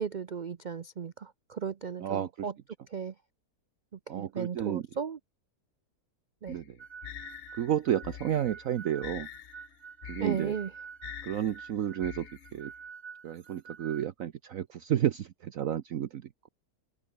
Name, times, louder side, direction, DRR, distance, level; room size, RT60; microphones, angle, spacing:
voice 1, 0.0-2.5 2.9-3.1 4.1-5.2 6.4-6.6 10.2-10.7, right 6 dB, 90° right, 0.4 m, -35 dB
voice 2, 2.0-2.5 4.1-4.8 6.5-6.8 7.5-9.3 10.1-10.5 11.2-12.7 13.2-16.5, right 10 dB, 60° right, 1.1 m, -31 dB
sound 1, 6.5-12.8, left 10 dB, 55° left, 0.9 m, -46 dB
sound 2, 6.8-14.1, right 6 dB, 40° right, 0.6 m, -48 dB
omnidirectional pair, 1.7 m